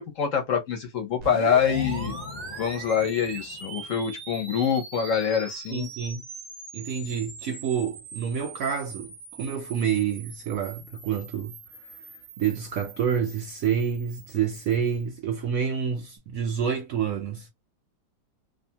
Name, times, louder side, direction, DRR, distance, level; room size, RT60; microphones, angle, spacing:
voice 1, 0.0-2.1 2.6-5.9, left 7 dB, 60° left, 1.0 m, -25 dB
sound 1, 1.2-15.0, right 4 dB, 50° right, 0.4 m, -42 dB
sound 2, 1.4-5.2, left 5 dB, 90° left, 0.5 m, -40 dB
voice 2, 5.7-6.2 6.7-9.1 9.4-11.6 12.4-17.5, right 7 dB, 70° right, 0.9 m, -28 dB
2.7 x 2.4 x 2.7 m
omnidirectional pair, 1.8 m